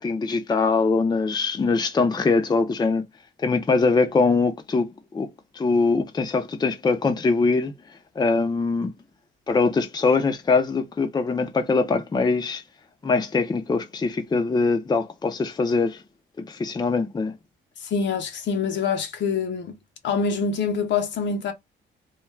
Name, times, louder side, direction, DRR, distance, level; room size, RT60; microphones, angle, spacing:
voice 1, 0.0-3.0 3.4-5.3 5.6-7.7 8.2-8.9 9.5-12.6 13.0-16.0 16.4-17.4, left 4 dB, 20° left, 0.5 m, -22 dB
voice 2, 17.8-19.8 20.0-21.5, left 5 dB, 65° left, 0.7 m, -25 dB
2.3 x 2.2 x 3.2 m
cardioid pair, 90°, 20 cm